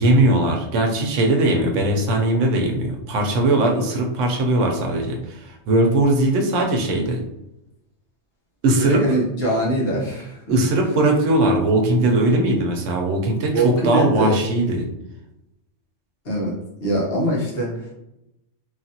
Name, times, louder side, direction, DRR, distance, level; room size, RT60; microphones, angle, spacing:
voice 1, 0.0-7.2 8.6-9.0 10.5-14.8, right 2 dB, 85° right, 2 dB, 1.0 m, -19 dB
voice 2, 8.7-10.6 13.5-14.4 16.2-16.5 16.8-17.9, right 1 dB, 55° left, -5 dB, 1.3 m, -23 dB
3.2 x 2.4 x 2.7 m, 0.86 s
omnidirectional pair, 1.2 m